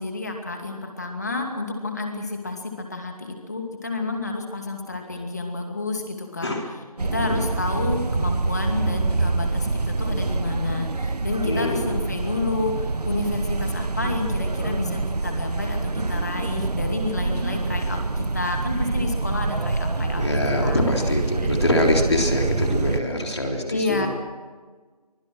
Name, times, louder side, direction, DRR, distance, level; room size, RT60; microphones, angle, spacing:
voice 1, 0.0-6.5 7.0-20.9 21.4-21.5 23.7-24.1, left 3 dB, 25° left, 3 dB, 2.5 m, -30 dB
voice 2, 6.4-6.7 7.2-7.4 11.4-11.9 20.2-24.1, left 1 dB, 45° left, 1 dB, 3.7 m, -24 dB
sound 1, 7.0-23.0, right 3 dB, 80° right, 0.9 m, -26 dB
23.5 x 23.0 x 6.3 m, 1.4 s
figure-of-eight pair, 175°, 20 cm